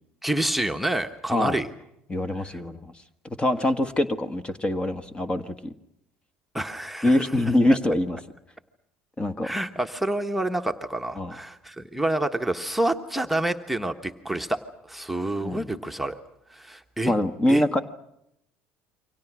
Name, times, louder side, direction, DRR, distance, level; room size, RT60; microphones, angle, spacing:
voice 1, 0.2-1.7 2.4-2.5 6.5-7.3 7.7-7.8 9.4-14.6 14.9-16.2 16.5-17.1 17.5-17.6, right 1 dB, ahead, 4 dB, 1.4 m, -28 dB
voice 2, 1.3-1.6 2.1-2.9 3.4-5.7 7.0-8.2 9.2-9.5 11.2-11.3 15.4-15.7 17.1-17.8, left 1 dB, 20° left, 10 dB, 1.6 m, -24 dB
28.5 x 24.5 x 6.3 m, 0.81 s
hypercardioid pair, 70°, 5 cm